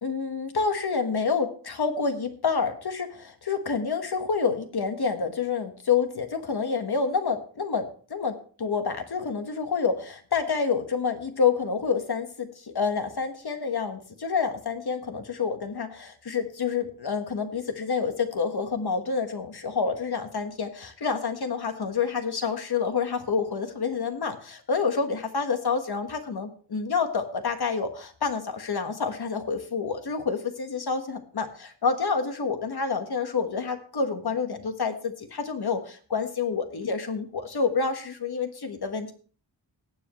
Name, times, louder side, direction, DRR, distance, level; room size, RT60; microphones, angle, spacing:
voice 1, 0.0-39.1, left 5 dB, 60° left, 7 dB, 1.5 m, -28 dB
19.5 x 7.6 x 3.1 m, 0.42 s
wide cardioid pair, 125°, 43 cm